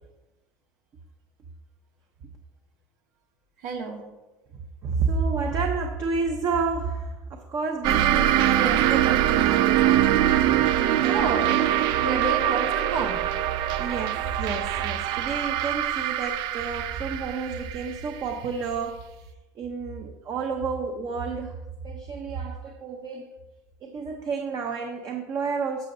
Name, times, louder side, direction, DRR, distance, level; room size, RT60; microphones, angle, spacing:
voice 1, 3.6-4.0 11.1-11.6 11.9-13.3, right 4 dB, 80° right, 1 dB, 1.8 m, -29 dB
voice 2, 4.8-10.1 11.0-11.6 13.7-19.0 19.6-21.6 21.8-23.3 23.8-25.9, right 5 dB, 45° right, 3 dB, 0.9 m, -30 dB
sound 1, 7.8-19.0, right 12 dB, 60° right, 0.4 m, -23 dB
12.0 x 6.6 x 2.7 m, 1.1 s
supercardioid pair, 105°, 9 cm